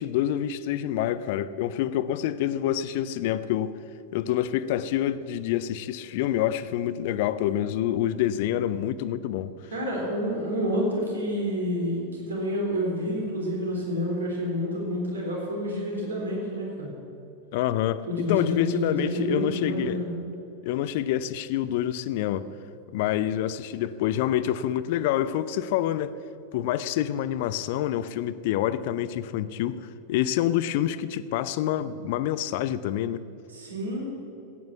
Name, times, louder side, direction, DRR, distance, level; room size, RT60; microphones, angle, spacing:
voice 1, 0.0-3.8 4.1-9.5 17.5-20.0 20.6-22.5 22.9-26.2 26.5-29.8 30.1-33.2, left 11 dB, 50° left, 15 dB, 0.5 m, -27 dB
voice 2, 9.7-16.9 18.0-20.1 33.5-34.1, equal, 70° right, -2 dB, 3.7 m, -29 dB
15.5 x 9.5 x 7.1 m, 2.8 s
figure-of-eight pair, 90°, 0 cm